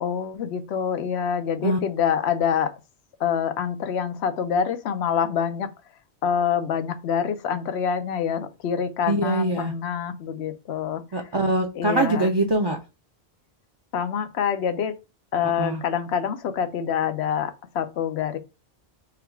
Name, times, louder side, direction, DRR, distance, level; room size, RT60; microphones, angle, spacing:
voice 1, 0.0-2.7 3.2-5.7 6.2-11.0 11.8-12.3 13.9-15.0 15.3-18.4, left 7 dB, 85° left, 0.9 m, -26 dB
voice 2, 9.1-9.7 11.1-12.8 15.6-15.8, right 2 dB, 30° right, 0.5 m, -23 dB
3.6 x 2.3 x 4.4 m
omnidirectional pair, 1.1 m